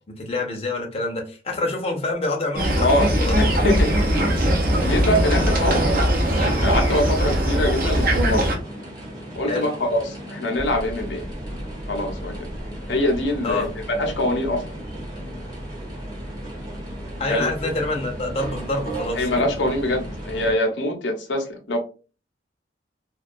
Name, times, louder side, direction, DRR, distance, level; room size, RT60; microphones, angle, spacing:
voice 1, 0.1-3.7 9.5-9.7 13.4-13.7 17.2-19.5, left 2 dB, 35° left, 0.6 m, -27 dB
sound 1, 2.6-8.6, equal, 55° right, 0.7 m, -20 dB
voice 2, 3.4-3.9 4.8-5.9 6.4-8.5 9.4-11.3 11.9-12.3 12.9-13.7 14.0-14.7 17.3-17.7 19.1-21.8, left 1 dB, 85° left, 0.6 m, -24 dB
sound 2, 7.8-20.5, right 1 dB, 25° right, 0.8 m, -35 dB
2.2 x 2.2 x 2.5 m
head